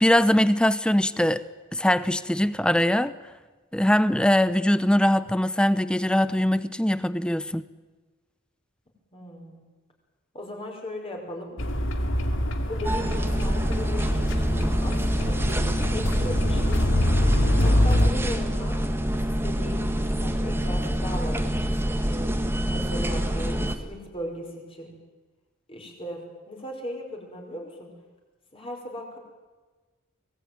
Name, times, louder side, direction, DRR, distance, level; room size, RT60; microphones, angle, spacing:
voice 1, 0.0-1.4 1.7-3.1 3.7-7.6, left 1 dB, 5° left, 0.7 m, -22 dB
voice 2, 9.1-9.6 10.3-11.6 12.7-16.8 17.6-22.0 22.7-24.9 25.7-27.9 28.5-29.2, left 1 dB, 25° left, 5.3 m, -37 dB
sound 1, 11.6-18.1, left 1 dB, 65° left, 2.4 m, -24 dB
sound 2, 12.8-23.8, equal, 10° right, 1.6 m, -27 dB
24.0 x 19.0 x 9.4 m
head